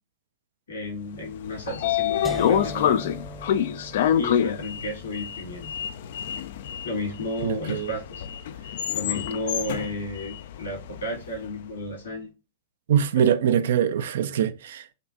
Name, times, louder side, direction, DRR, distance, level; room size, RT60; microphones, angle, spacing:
voice 1, 0.7-3.0 4.1-5.7 6.8-8.2 8.9-12.3 13.1-13.3, left 1 dB, 80° left, 2.4 m, -33 dB
Sliding door, 1.2-11.4, left 9 dB, 60° left, 0.3 m, -27 dB
sound 1, 2.2-8.2, right 1 dB, ahead, 0.5 m, -42 dB
voice 2, 7.4-7.9 12.9-14.9, right 9 dB, 65° right, 0.4 m, -23 dB
5.1 x 2.5 x 2.6 m
hypercardioid pair, 105°, 0 cm